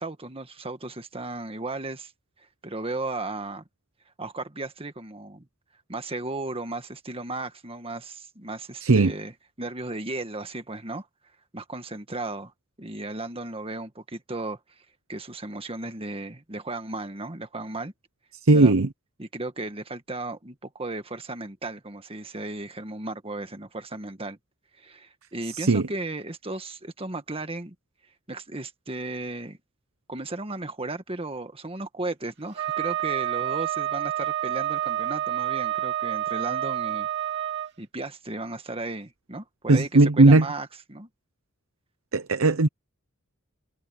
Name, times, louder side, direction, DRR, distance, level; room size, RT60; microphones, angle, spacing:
voice 1, 0.0-2.1 2.6-3.6 4.2-5.5 5.9-11.1 11.5-12.5 12.8-14.6 15.1-17.9 18.5-18.7 19.2-24.4 24.8-27.8 28.3-29.6 30.1-37.1 37.8-41.1, right 2 dB, 25° right, 1.7 m, -35 dB
voice 2, 8.8-9.1 18.4-18.9 25.5-25.8 39.7-40.5 42.1-42.7, right 2 dB, 70° right, 0.8 m, -17 dB
Wind instrument woodwind instrument, 32.6-37.7, right 11 dB, 50° right, 3.0 m, -28 dB
head